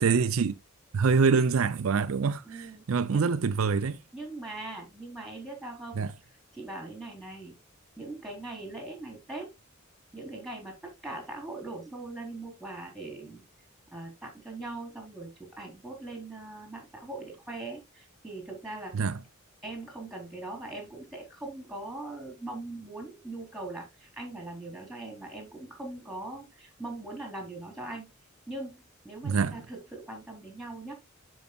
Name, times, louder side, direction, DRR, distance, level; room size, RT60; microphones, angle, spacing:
voice 1, 0.0-0.6 0.9-4.0 5.9-6.1 18.9-19.2 29.2-29.6, right 5 dB, 70° right, 0.5 m, -25 dB
voice 2, 2.4-3.3 4.1-6.1 6.5-7.6 8.0-9.5 10.1-13.4 13.9-18.9 19.6-28.1 28.5-28.7 29.0-30.9, right 2 dB, ahead, 4.2 m, -41 dB
12.5 x 5.5 x 2.4 m
head